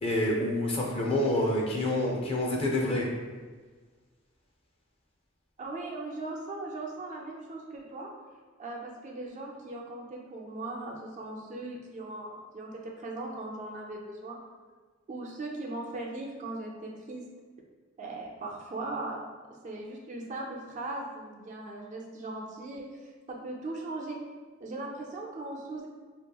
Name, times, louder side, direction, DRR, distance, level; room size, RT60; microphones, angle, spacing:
voice 1, 0.0-3.1, left 1 dB, 30° left, -1 dB, 0.4 m, -27 dB
voice 2, 5.6-8.1 8.6-14.4 15.1-17.3 18.0-19.3 19.6-24.2 24.6-25.9, right 2 dB, 40° right, 0 dB, 0.3 m, -39 dB
2.8 x 2.6 x 2.2 m, 1.4 s
head